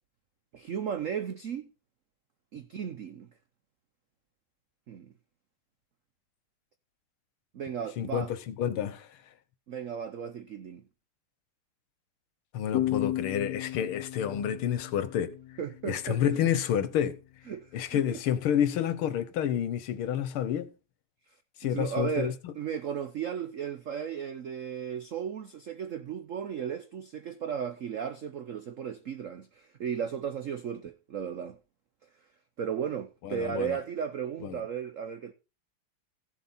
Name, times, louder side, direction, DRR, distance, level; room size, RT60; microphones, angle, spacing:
voice 1, 0.5-1.7 2.5-3.3 4.9-5.1 7.5-8.3 9.7-10.9 15.6-16.5 17.5-18.2 21.6-31.6 32.6-35.3, right 8 dB, 75° right, 0.7 m, -35 dB
voice 2, 8.0-9.1 12.5-15.3 15.9-17.2 17.7-20.7 21.6-22.5 33.2-33.8 34.4-34.6, left 9 dB, 85° left, 1.9 m, -29 dB
sound 1, 12.7-16.2, left 13 dB, 60° left, 1.1 m, -34 dB
14.5 x 7.3 x 4.2 m
omnidirectional pair, 2.3 m